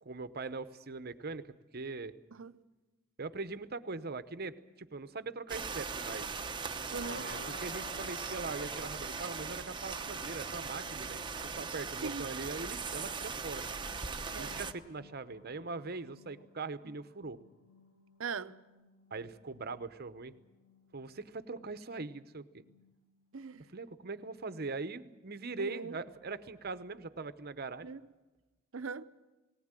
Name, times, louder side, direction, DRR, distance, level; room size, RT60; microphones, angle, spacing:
voice 1, 0.0-2.1 3.2-6.3 7.1-13.7 14.4-17.4 19.1-20.3 20.9-22.4 23.7-27.9, right 3 dB, 50° right, 0.9 m, -41 dB
sound 1, 5.5-14.7, right 5 dB, 25° right, 0.9 m, -39 dB
sound 2, 6.9-26.8, left 1 dB, 85° left, 2.5 m, -56 dB
voice 2, 6.9-7.4 12.0-12.3 14.3-14.6 16.8-16.9 18.2-18.6 23.3-23.6 25.6-26.0 27.8-28.0 28.7-29.1, right 5 dB, 80° right, 0.7 m, -40 dB
19.5 x 19.0 x 9.0 m
head